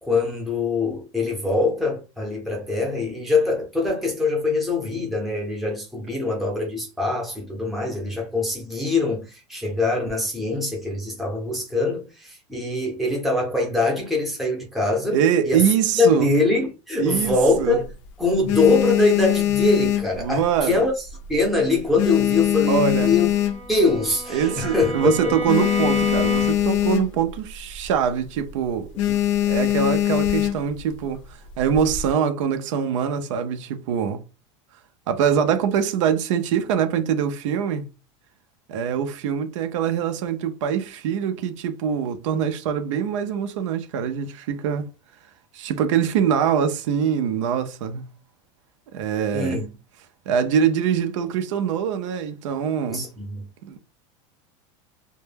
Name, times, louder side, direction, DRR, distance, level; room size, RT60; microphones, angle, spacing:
voice 1, 0.0-15.7 15.9-17.9 18.2-20.9 21.3-23.3 23.7-25.4 29.1-29.2 49.3-49.7 52.9-53.5, left 3 dB, ahead, 0.6 m, -23 dB
voice 2, 15.1-16.3 17.0-17.8 20.2-20.8 22.7-23.1 24.3-28.9 29.4-31.2 31.6-34.2 35.1-37.9 38.7-44.9 45.5-48.0 48.9-49.6 50.3-53.0 53.6-53.8, right 8 dB, 85° right, 0.5 m, -23 dB
sound 1, 17.2-17.9 18.3-20.8 21.1-21.4 21.7-24.0 24.4-24.5 24.7-24.8 25.2-27.4 27.7-27.9 28.3-28.5 29.0-30.8 31.5-32.1, left 12 dB, 80° left, 0.5 m, -22 dB
Bowed string instrument, 23.0-26.9, right 2 dB, 40° right, 0.7 m, -32 dB
2.1 x 2.1 x 3.2 m
supercardioid pair, 175°, 16 cm